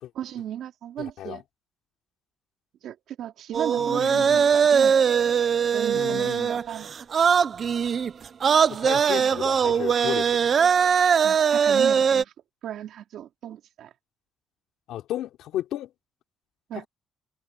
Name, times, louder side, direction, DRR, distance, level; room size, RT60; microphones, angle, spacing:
voice 1, 0.1-1.4 2.8-5.0 5.7-6.9 9.2-9.3 11.2-12.3 12.6-13.9 16.7-16.9, right 11 dB, 75° right, 3.6 m, -35 dB
voice 2, 1.0-1.4 3.8-4.6 5.9-6.6 8.7-10.5 14.9-15.9 16.7-16.9, left 12 dB, 85° left, 3.6 m, -34 dB
sound 1, 3.5-12.2, right 7 dB, 45° right, 0.8 m, -21 dB
cardioid pair, 115°, 0 cm